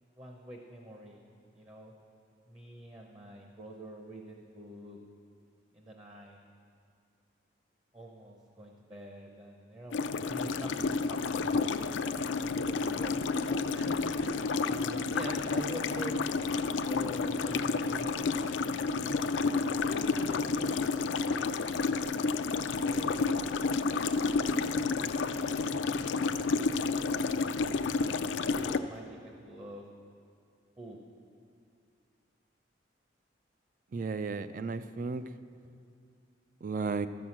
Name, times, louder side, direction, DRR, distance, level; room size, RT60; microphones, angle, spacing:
voice 1, 0.2-1.2 1.5-1.9 2.5-5.0 5.7-6.4 7.9-10.0 10.2-11.8 12.5-16.3 16.8-18.3 19.0-21.8 22.8-23.6 25.0-26.6 27.0-28.0 28.5-29.8 30.8-31.0, right 1 dB, 25° right, 1 dB, 0.7 m, -46 dB
sound 1, 9.9-28.8, left 4 dB, 85° left, 0.4 m, -30 dB
voice 2, 33.9-35.2 36.6-37.1, right 4 dB, 45° right, 12 dB, 0.4 m, -34 dB
13.5 x 6.2 x 7.2 m, 2.3 s
head